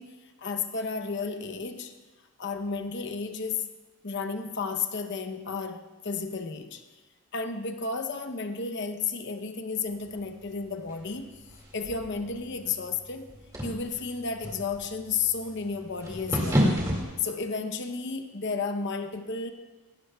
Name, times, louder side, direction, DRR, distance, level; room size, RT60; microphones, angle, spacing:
voice 1, 0.0-1.9 2.4-3.6 4.0-6.8 7.3-11.3 11.7-13.3 13.6-16.7 17.2-19.5, left 5 dB, 55° left, 7 dB, 0.8 m, -32 dB
sound 1, 9.9-17.0, equal, 15° right, 2.1 m, -32 dB
17.5 x 16.5 x 2.3 m, 1.2 s
head